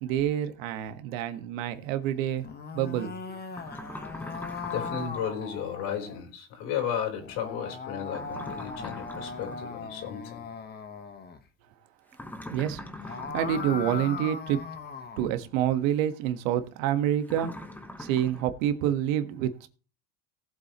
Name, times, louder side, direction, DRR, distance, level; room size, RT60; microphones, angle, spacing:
voice 1, 0.0-2.4 2.7-3.1 12.5-14.6 15.2-17.5 18.0-19.7, right 11 dB, 80° right, 1.5 m, -28 dB
sound 1, 2.3-6.2 7.2-11.4 12.8-15.3, left 5 dB, 25° left, 1.3 m, -39 dB
sound 2, 3.5-5.3 8.1-9.7 12.1-14.1 17.2-18.5, left 1 dB, 5° left, 1.1 m, -42 dB
voice 2, 4.6-10.4, left 8 dB, 70° left, 4.2 m, -34 dB
18.5 x 7.8 x 3.0 m
cardioid pair, 135°, 39 cm